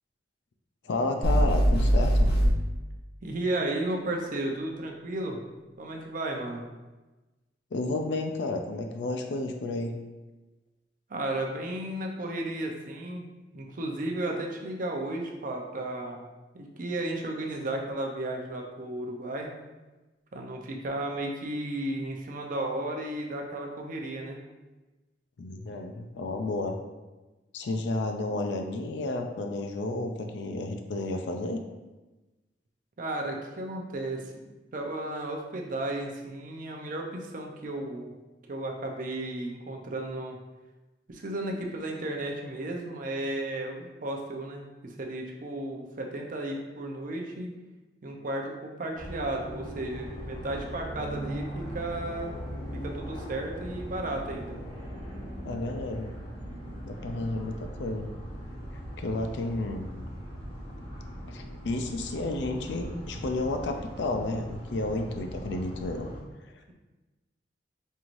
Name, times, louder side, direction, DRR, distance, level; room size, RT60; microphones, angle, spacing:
voice 1, 0.8-2.3 7.7-10.0 25.4-26.8 27.5-31.6 55.4-56.1 56.8-58.1 59.0-59.9 61.3-66.1 66.5-66.7, left 2 dB, 80° left, 5 dB, 0.4 m, -31 dB
sound 1, 1.2-2.5, equal, 65° left, 1.0 m, -21 dB
voice 2, 3.2-5.4 5.8-6.7 11.1-13.3 13.5-16.2 16.5-19.5 20.3-24.4 33.0-34.4 34.7-38.1 38.5-40.4 41.1-47.5 48.0-52.4 52.7-54.6, right 1 dB, 50° right, 1 dB, 0.6 m, -34 dB
sound 2, 48.9-66.2, equal, 35° left, 1.1 m, -40 dB
5.4 x 3.0 x 2.5 m, 1.1 s
head